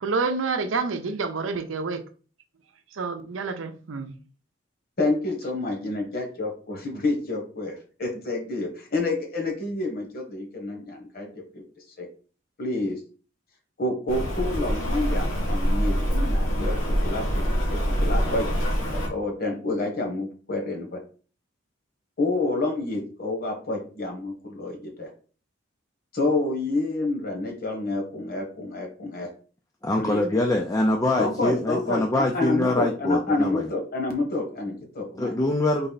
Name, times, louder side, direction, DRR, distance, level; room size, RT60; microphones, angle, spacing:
voice 1, 0.0-2.0 2.9-4.1, right 4 dB, 75° right, 0.6 m, -28 dB
voice 2, 5.0-11.6 12.0-12.1 12.6-13.0 13.8-17.4 17.7-18.6 18.9-21.0 22.2-25.1 26.1-29.3 30.0-30.2 31.2-35.3, left 2 dB, 50° left, 1.3 m, -28 dB
Rain, 14.1-19.1, equal, 85° left, 1.5 m, -25 dB
voice 3, 29.8-33.7 35.2-35.9, left 1 dB, 15° left, 0.4 m, -24 dB
4.0 x 3.3 x 4.0 m
head